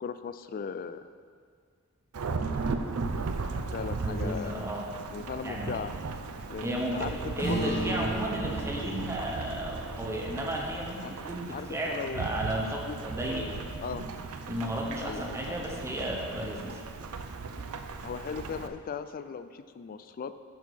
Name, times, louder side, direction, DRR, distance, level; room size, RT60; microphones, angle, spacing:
voice 1, 0.0-1.1 3.7-4.7 5.1-5.9 6.5-8.1 11.0-11.2 11.5-12.6 12.9-13.0 13.3-14.0 15.0-15.6 18.0-20.3, left 6 dB, 40° left, 12 dB, 0.3 m, -38 dB
Thunderstorm / Rain, 2.1-18.7, right 4 dB, 85° right, 0.5 m, -36 dB
voice 2, 4.0-4.9 5.4-5.8 6.6-7.1 7.4-13.5 14.5-16.8, right 1 dB, 15° right, -1 dB, 0.8 m, -34 dB
Acoustic guitar / Strum, 7.4-12.2, right 1 dB, 25° left, 2.1 m, -37 dB
7.0 x 6.4 x 6.0 m, 2.1 s
head